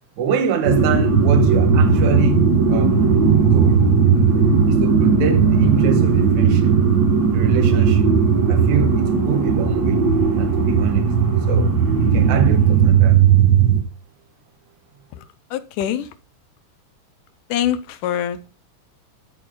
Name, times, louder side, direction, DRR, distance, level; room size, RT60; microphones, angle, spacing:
voice 1, 0.2-3.1 3.5-3.9 4.7-6.8 7.3-8.1 8.5-10.1 10.3-11.1 11.5-11.7 12.0-13.2, right 7 dB, 70° right, 2.5 m, -25 dB
sound 1, 0.6-13.8, right 6 dB, 45° right, 1.4 m, -16 dB
voice 2, 15.5-16.1 17.5-18.5, left 10 dB, 90° left, 2.4 m, -24 dB
12.5 x 4.4 x 4.7 m
omnidirectional pair, 3.6 m